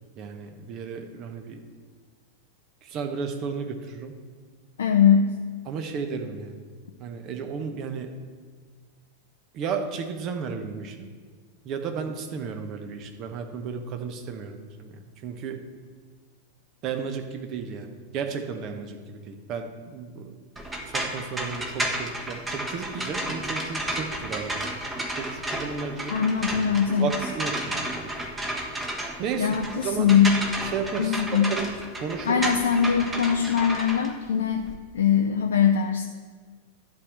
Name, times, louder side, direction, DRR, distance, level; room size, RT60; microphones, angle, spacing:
voice 1, 0.2-1.6 2.8-4.1 5.7-6.6 7.0-8.1 9.5-11.1 11.6-15.6 16.8-17.9 18.1-20.3 20.9-24.8 25.2-26.2 27.0-28.1 29.2-30.3 30.6-31.2 31.5-31.6 32.0-32.4, right 5 dB, 35° right, 6 dB, 1.1 m, -33 dB
voice 2, 4.8-5.3 26.1-27.1 29.4-30.4 31.0-31.5 32.2-36.1, left 7 dB, 65° left, 3 dB, 0.5 m, -22 dB
sound 1, 20.6-34.8, right 1 dB, 15° right, 1.3 m, -32 dB
11.0 x 4.7 x 7.8 m, 1.5 s
figure-of-eight pair, 90°, 0 cm